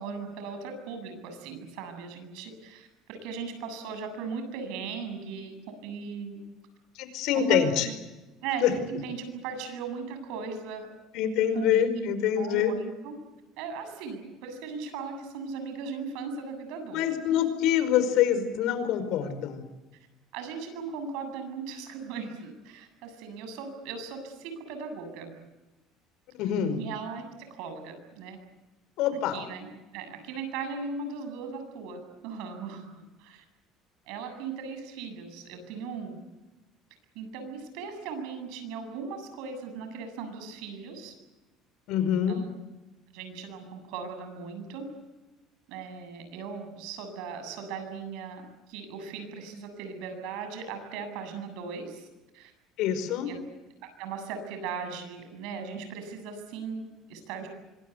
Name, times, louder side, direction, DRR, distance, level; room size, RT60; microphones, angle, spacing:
voice 1, 0.0-6.4 7.3-7.9 8.4-10.9 11.5-13.1 13.6-17.0 17.3-17.4 20.3-25.3 26.8-27.2 27.5-28.4 29.3-33.4 34.1-36.2 37.1-41.2 42.3-42.5 43.1-44.9 45.7-48.4 48.7-52.1 52.3-52.5 53.2-53.4 54.0-57.5, right 5 dB, 80° right, 7 dB, 7.7 m, -38 dB
voice 2, 6.9-7.9 8.6-8.7 11.1-12.7 16.9-19.6 26.3-26.8 29.0-29.4 41.9-42.4 52.8-53.3, left 9 dB, 70° left, 10 dB, 5.0 m, -25 dB
25.5 x 22.5 x 8.2 m, 1.1 s
cardioid pair, 125°, 0 cm